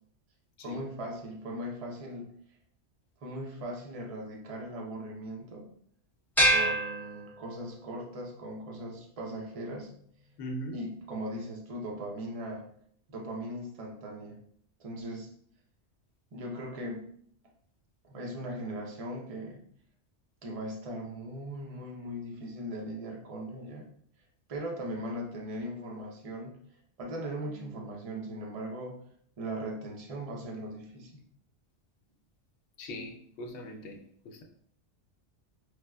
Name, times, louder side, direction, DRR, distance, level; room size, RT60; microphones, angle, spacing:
voice 1, 0.6-2.3 3.2-5.8 6.4-9.9 10.7-12.6 13.1-14.4 14.8-15.3 16.3-17.1 18.0-19.6 20.4-23.8 24.5-26.6 27.0-29.0 29.4-31.2, right 1 dB, 40° right, -1 dB, 0.6 m, -39 dB
sound 1, 6.4-7.8, right 1 dB, ahead, 0.5 m, -27 dB
voice 2, 10.4-10.8 32.8-34.4, equal, 75° left, 3 dB, 0.8 m, -40 dB
4.7 x 2.2 x 2.2 m, 0.63 s
omnidirectional pair, 1.2 m